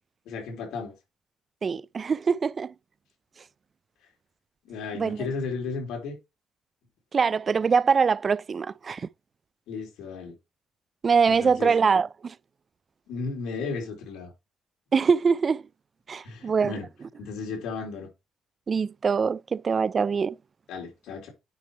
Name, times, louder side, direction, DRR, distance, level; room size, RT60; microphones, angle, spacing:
voice 1, 0.3-0.9 4.7-6.2 9.7-10.4 11.3-11.8 13.1-14.3 16.2-16.9 17.2-18.1 20.7-21.3, left 4 dB, 90° left, 3.5 m, -34 dB
voice 2, 1.6-2.7 4.9-5.3 7.1-9.1 11.0-12.3 14.9-15.6 16.1-16.7 18.7-20.4, right 5 dB, 40° right, 0.3 m, -23 dB
9.3 x 3.1 x 5.4 m
cardioid pair, 90°, 0 cm